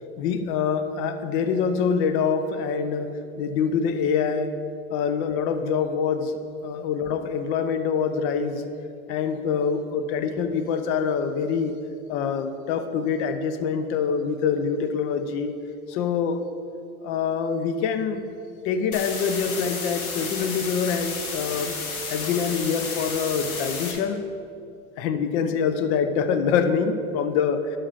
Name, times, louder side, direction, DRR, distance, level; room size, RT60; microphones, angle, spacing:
voice 1, 0.2-3.1 3.4-4.5 4.9-8.7 9.1-11.7 12.1-15.5 15.9-16.4 17.0-18.2 18.6-21.8 22.1-24.2 25.0-27.6, left 6 dB, 50° left, 9 dB, 0.8 m, -25 dB
sound 1, 18.9-23.9, left 4 dB, 75° left, 1.6 m, -32 dB
11.0 x 6.3 x 4.0 m, 2.5 s
hypercardioid pair, 105°, 43 cm